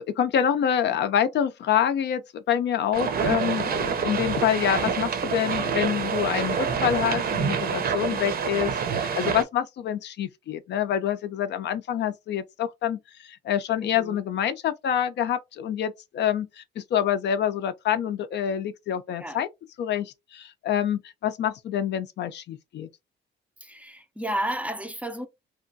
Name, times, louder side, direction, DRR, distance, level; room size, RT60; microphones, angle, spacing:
voice 1, 0.0-19.5 19.8-22.9, left 9 dB, 60° left, 0.4 m, -26 dB
sound 1, 2.9-9.4, right 6 dB, 50° right, 0.6 m, -27 dB
voice 2, 13.8-14.2 19.2-19.4 23.6-25.3, right 1 dB, 5° right, 0.4 m, -32 dB
3.0 x 2.3 x 2.6 m
cardioid pair, 90°, 20 cm